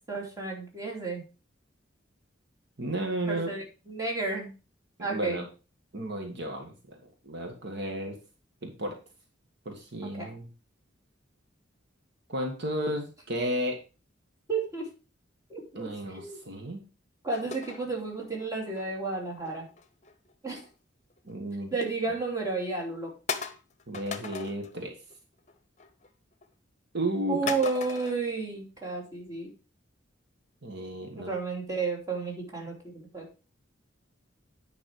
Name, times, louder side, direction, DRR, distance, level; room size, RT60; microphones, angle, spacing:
voice 1, 0.1-1.2 3.3-4.5 5.0-5.4 10.0-10.3 14.5-14.9 15.5-16.4 17.2-19.7 20.4-20.6 21.7-23.1 27.3-29.5 31.1-33.3, right 3 dB, 20° right, -2 dB, 2.8 m, -32 dB
voice 2, 2.8-3.5 5.0-5.4 5.9-8.1 8.6-9.0 9.6-10.5 12.3-13.8 15.7-16.8 21.2-21.7 23.9-25.0 26.9-27.5 30.6-31.3, right 1 dB, 60° right, 3 dB, 1.6 m, -33 dB
sound 1, 17.3-18.9 19.4-20.7 21.1-21.4 21.9-22.0 22.5-22.6 23.3-24.8 25.1-25.5 25.8-26.4 27.5-28.2, left 5 dB, 40° left, 0.9 m, -38 dB
9.4 x 5.4 x 4.8 m, 0.32 s
head